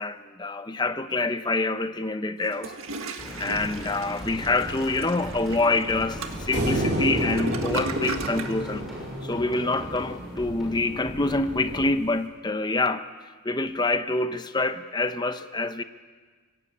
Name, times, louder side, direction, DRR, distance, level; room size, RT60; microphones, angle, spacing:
voice 1, 0.0-2.7 3.0-8.9 9.2-13.0 13.4-15.8, left 2 dB, 20° left, 10 dB, 0.8 m, -26 dB
Toilet flush, 2.4-8.6, right 3 dB, 80° right, 1.7 m, -36 dB
sound 1, 3.2-11.9, equal, ahead, 6.4 m, -37 dB
sound 2, 6.5-9.9, right 1 dB, 50° right, 4.0 m, -29 dB
24.0 x 18.0 x 8.6 m, 1.4 s
head